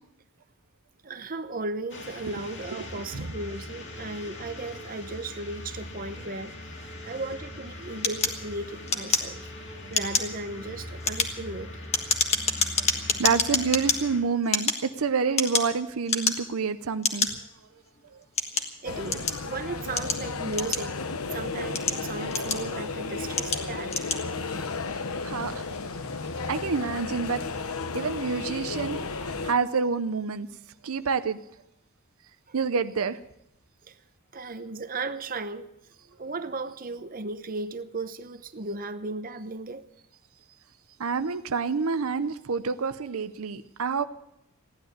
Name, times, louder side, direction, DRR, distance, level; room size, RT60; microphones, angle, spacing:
voice 1, 1.0-6.5 7.0-11.9 18.6-24.1 32.5-32.6 33.8-34.0 34.3-39.9, right 3 dB, 40° right, 0.8 m, -36 dB
sound 1, 1.9-14.2, left 1 dB, 55° left, 2.5 m, -41 dB
sound 2, 8.0-9.6 9.9-10.4 10.9-14.0 14.4-15.8 16.1-16.6 17.0-17.3 18.0-19.4 20.0-21.1 21.6-22.8 23.3-23.6 23.9-24.2, left 4 dB, 30° left, 1.5 m, -27 dB
voice 2, 13.2-17.3 18.1-18.2 25.2-25.6 26.5-27.4 27.9-30.5 30.8-31.4 32.5-33.2 41.0-44.0, right 5 dB, 80° right, 0.6 m, -28 dB
sound 3, 18.9-29.5, left 4 dB, 85° left, 1.0 m, -33 dB
15.5 x 11.0 x 8.0 m
head